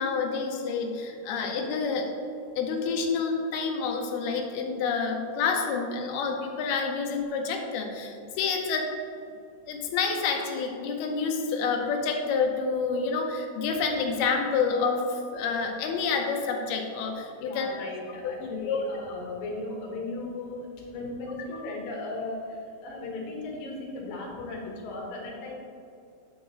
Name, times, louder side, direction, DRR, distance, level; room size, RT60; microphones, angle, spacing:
voice 1, 0.0-2.1 2.6-8.9 9.7-17.8 18.2-18.8 21.5-21.6, left 5 dB, 85° left, 3 dB, 2.7 m, -28 dB
voice 2, 17.4-25.5, left 2 dB, 70° left, -2 dB, 2.9 m, -37 dB
9.5 x 7.4 x 3.0 m, 2.6 s
omnidirectional pair, 4.5 m